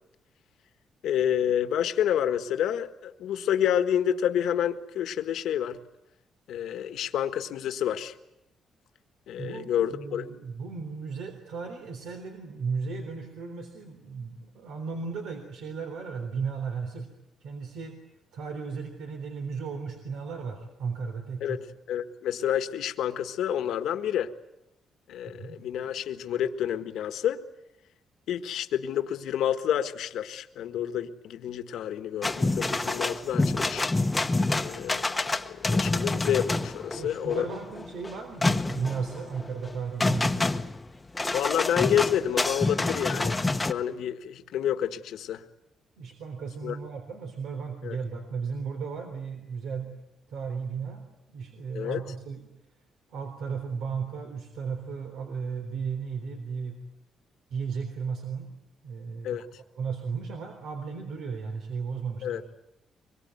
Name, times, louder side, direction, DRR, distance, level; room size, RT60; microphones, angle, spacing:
voice 1, 1.0-5.8 6.5-8.1 9.3-10.3 21.4-21.6 21.9-24.3 25.1-27.4 28.3-33.9 34.5-37.4 41.3-45.4 46.6-46.8 47.8-48.0 51.7-52.0 59.2-59.4 62.2-62.4, left 10 dB, 80° left, 9 dB, 1.5 m, -29 dB
voice 2, 9.4-17.1 17.4-18.0 18.3-21.6 25.2-25.6 36.9-40.5 46.0-49.9 50.3-51.0 51.3-52.5 53.1-56.8 57.5-58.5 58.8-59.4 59.8-62.4, right 5 dB, 85° right, 5 dB, 3.7 m, -35 dB
sound 1, 32.2-43.7, left 2 dB, 15° left, 1.0 m, -27 dB
24.5 x 22.5 x 9.5 m, 0.86 s
cardioid pair, 145°, 0 cm